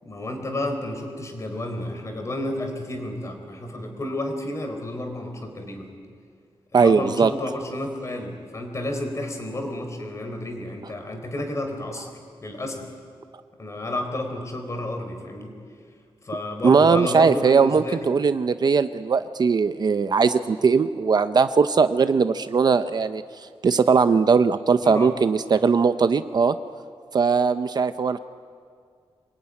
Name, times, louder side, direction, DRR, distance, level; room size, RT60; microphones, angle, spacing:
voice 1, 0.0-5.9 6.7-12.9 13.6-15.5 16.2-18.2 24.8-25.1, left 1 dB, 30° left, 5 dB, 3.9 m, -31 dB
voice 2, 6.7-7.3 16.6-23.2 23.6-26.6 27.1-28.2, right 5 dB, 45° right, 11 dB, 0.7 m, -19 dB
26.0 x 21.0 x 9.8 m, 2.1 s
wide cardioid pair, 180°, 10 cm